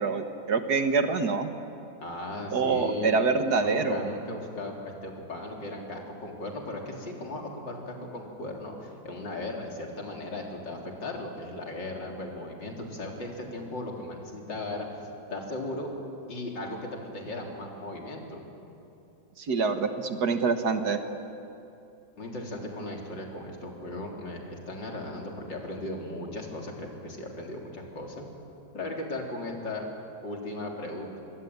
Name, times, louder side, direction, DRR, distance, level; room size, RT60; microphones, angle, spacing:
voice 1, 0.0-1.6 2.5-4.1 19.4-21.0, right 4 dB, 60° right, 8 dB, 1.9 m, -26 dB
voice 2, 2.0-3.2 3.5-15.9 16.3-16.8 17.1-18.4 22.2-28.3 28.7-29.9 30.2-31.2, left 2 dB, 70° left, 0 dB, 4.5 m, -37 dB
25.0 x 24.5 x 9.5 m, 2.7 s
omnidirectional pair, 2.0 m